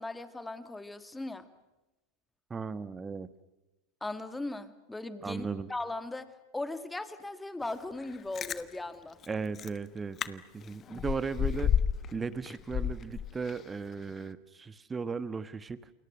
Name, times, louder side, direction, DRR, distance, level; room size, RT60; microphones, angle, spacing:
voice 1, 0.0-1.5 4.0-9.2, left 2 dB, 10° left, 11 dB, 2.2 m, -38 dB
voice 2, 2.5-3.3 5.2-5.7 9.3-11.7 12.1-15.8, right 5 dB, 15° right, 15 dB, 1.3 m, -36 dB
Chewing mastication, 8.1-8.6 9.2-9.3 9.6-9.8 10.2-10.3 10.6-12.1 12.5-13.7 14.1-14.2, left 8 dB, 30° left, 1.3 m, -30 dB
29.0 x 29.0 x 6.3 m, 1.0 s
figure-of-eight pair, 90°, 0 cm